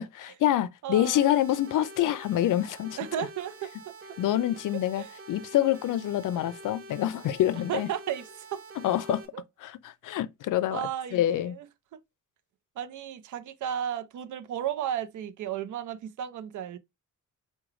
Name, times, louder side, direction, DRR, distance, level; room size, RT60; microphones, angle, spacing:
voice 1, 0.0-3.0 4.2-7.9 8.8-9.2 9.6-11.6, left 12 dB, 80° left, 0.5 m, -26 dB
voice 2, 0.8-1.4 3.0-3.7 5.0-5.1 7.7-8.6 9.3-9.4 10.7-11.7 11.9-12.0 12.8-16.8, right 10 dB, 70° right, 0.5 m, -34 dB
sound 1, 1.0-9.2, right 2 dB, 45° right, 0.8 m, -47 dB
4.8 x 2.3 x 3.1 m
wide cardioid pair, 140°, 31 cm